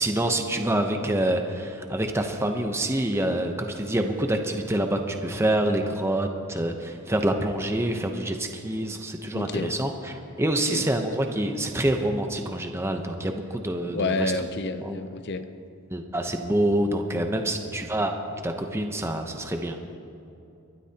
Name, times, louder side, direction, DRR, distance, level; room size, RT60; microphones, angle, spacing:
voice 1, 0.0-14.3 14.8-15.0 15.9-18.1 18.4-19.8, right 1 dB, 10° right, 4 dB, 0.8 m, -26 dB
voice 2, 9.3-9.7 10.7-10.9 13.9-15.4, left 3 dB, 50° left, 10 dB, 0.6 m, -29 dB
23.0 x 12.0 x 2.9 m, 2.7 s
head